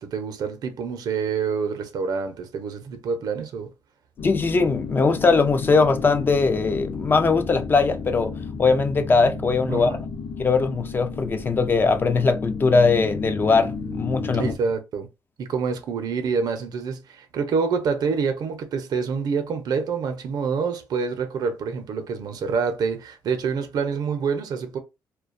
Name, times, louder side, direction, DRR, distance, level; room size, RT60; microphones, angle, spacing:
voice 1, 0.0-3.7 9.7-10.1 14.4-15.1 15.4-24.8, right 5 dB, 65° right, 0.6 m, -27 dB
sound 1, 4.2-14.6, left 4 dB, 60° left, 0.7 m, -33 dB
voice 2, 4.2-8.3 8.6-9.9 10.4-14.5, left 4 dB, 30° left, 0.4 m, -20 dB
2.3 x 2.2 x 2.5 m
cardioid pair, 100°, 7 cm